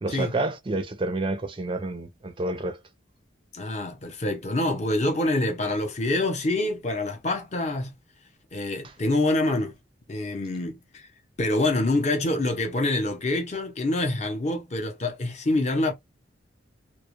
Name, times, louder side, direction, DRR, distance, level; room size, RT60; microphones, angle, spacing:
voice 1, 0.0-2.8, right 2 dB, 25° right, 0.4 m, -29 dB
voice 2, 3.5-7.9 8.5-9.8 10.1-11.1 11.4-15.9, left 2 dB, 35° left, 0.6 m, -26 dB
2.2 x 2.0 x 2.9 m
head